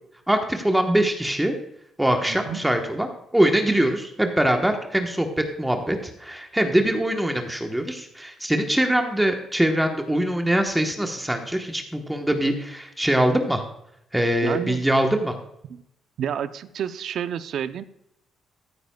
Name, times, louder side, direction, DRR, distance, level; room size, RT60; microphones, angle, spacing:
voice 1, 0.3-1.6 2.0-13.6 14.1-15.4, right 1 dB, 5° right, 4 dB, 1.1 m, -23 dB
voice 2, 2.3-2.6 14.4-14.8 15.7-15.8 16.2-17.8, right 9 dB, 70° right, 12 dB, 0.6 m, -30 dB
14.5 x 9.4 x 2.3 m, 0.77 s
cardioid pair, 90°, 0 cm